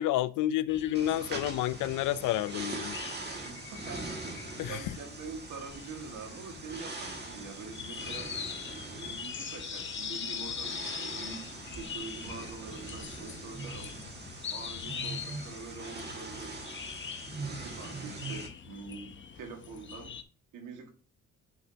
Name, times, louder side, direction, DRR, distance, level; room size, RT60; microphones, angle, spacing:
voice 1, 0.0-3.0 4.6-5.0, left 13 dB, 90° left, 0.5 m, -30 dB
sound 1, 0.7-20.2, left 7 dB, 40° left, 0.9 m, -43 dB
sound 2, 0.9-18.5, right 3 dB, 35° right, 2.0 m, -42 dB
voice 2, 3.4-8.3 8.9-14.0 14.5-16.6 17.4-20.1 20.5-20.9, right 4 dB, 85° right, 1.9 m, -45 dB
6.9 x 6.5 x 2.8 m
cardioid pair, 90°, 30 cm